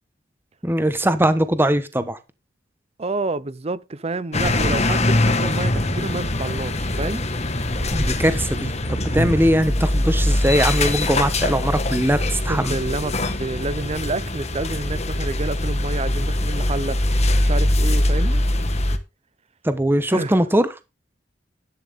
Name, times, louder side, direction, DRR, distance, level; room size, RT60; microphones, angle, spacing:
voice 1, 0.6-2.2 7.9-12.8 19.6-20.7, right 1 dB, 10° right, 1.1 m, -21 dB
voice 2, 3.0-7.2 12.5-17.0 17.4-18.4 20.1-20.4, right 3 dB, 35° right, 0.6 m, -29 dB
sound 1, 4.3-19.0, left 1 dB, 35° left, 1.5 m, -22 dB
11.5 x 11.0 x 3.6 m
head